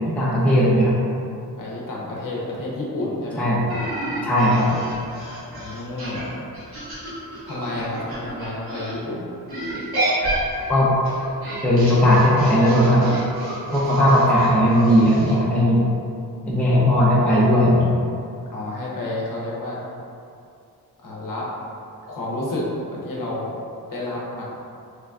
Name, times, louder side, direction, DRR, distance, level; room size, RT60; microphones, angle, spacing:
voice 1, 0.1-0.9 3.4-3.6 4.2-4.7 10.7-10.9 11.6-13.1 13.7-15.8 16.5-18.0, equal, 5° left, -8 dB, 0.6 m, -17 dB
voice 2, 1.6-3.5 5.6-6.3 7.4-9.3 18.5-19.8 21.0-21.5 22.1-23.6 23.9-24.4, left 1 dB, 60° left, -5 dB, 0.8 m, -30 dB
sound 1, 3.7-8.9 9.5-15.3, right 1 dB, 70° right, 1.3 m, -30 dB
3.7 x 3.3 x 2.3 m, 2.5 s
wide cardioid pair, 145°, 38 cm